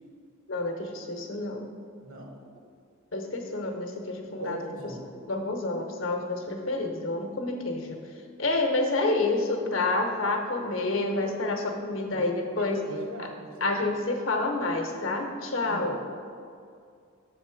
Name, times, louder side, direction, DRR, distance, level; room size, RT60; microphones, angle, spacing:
voice 1, 0.5-1.7 3.1-4.6 5.3-8.0 8.4-12.8 13.6-15.9, left 2 dB, 65° left, 3 dB, 0.9 m, -28 dB
voice 2, 2.0-2.6 4.4-5.1 12.1-12.3 12.5-13.9 15.6-16.0, right 1 dB, 70° right, 1 dB, 1.2 m, -39 dB
6.6 x 4.0 x 5.7 m, 2.3 s
head